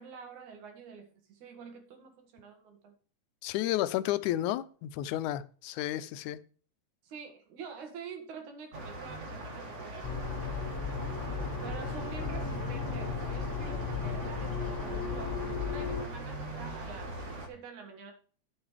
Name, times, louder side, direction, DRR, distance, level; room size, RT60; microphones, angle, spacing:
voice 1, 0.0-2.9 7.0-10.6 11.6-15.4 15.6-17.2 17.5-18.1, right 5 dB, 75° right, 4 dB, 3.1 m, -47 dB
voice 2, 3.4-6.4, left 14 dB, 85° left, 15 dB, 2.0 m, -32 dB
sound 1, 8.7-17.5, right 1 dB, 60° right, 0.7 m, -41 dB
sound 2, 10.0-16.0, left 5 dB, 15° left, 0.7 m, -35 dB
11.0 x 7.2 x 3.2 m, 0.40 s
omnidirectional pair, 3.4 m